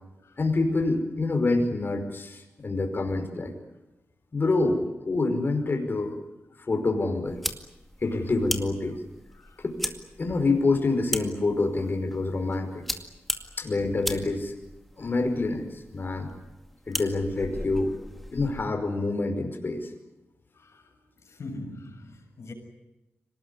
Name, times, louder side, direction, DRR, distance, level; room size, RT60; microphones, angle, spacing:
voice 1, 0.4-3.5 4.3-6.2 6.7-7.4 8.0-9.0 9.6-9.9 10.2-12.8 13.6-14.5 15.0-16.3 16.9-17.9 18.3-19.9, left 3 dB, 45° left, 5.1 m, -26 dB
sound 1, 7.3-18.7, equal, ahead, 2.2 m, -38 dB
voice 2, 20.5-20.9 21.2-22.5, left 2 dB, 70° left, 7.0 m, -42 dB
25.0 x 19.5 x 9.9 m
wide cardioid pair, 95°, 5 cm